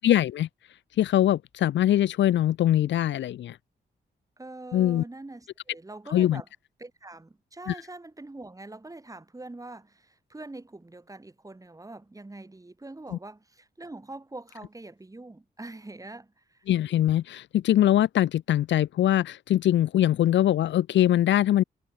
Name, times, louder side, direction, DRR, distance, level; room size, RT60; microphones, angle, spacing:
voice 1, 0.0-0.5 1.0-3.6 4.7-5.0 6.1-6.4 7.7-7.8 16.7-21.6, left 12 dB, 85° left, 0.9 m, -22 dB
voice 2, 4.4-6.5 6.8-16.6, right 2 dB, 20° right, 7.8 m, -44 dB
cardioid pair, 85°, 19 cm